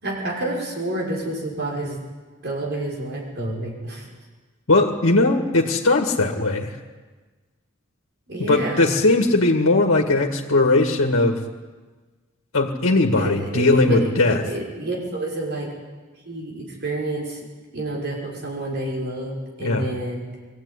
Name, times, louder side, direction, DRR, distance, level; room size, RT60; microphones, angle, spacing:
voice 1, 0.0-2.0 2.4-4.1 8.3-9.0 13.2-15.7 16.2-17.4 17.7-20.2, right 1 dB, 55° right, -2 dB, 5.9 m, -29 dB
voice 2, 4.7-6.7 8.4-11.4 12.5-14.4 19.6-19.9, left 2 dB, 85° left, 2 dB, 2.0 m, -19 dB
22.0 x 15.5 x 9.8 m, 1.3 s
head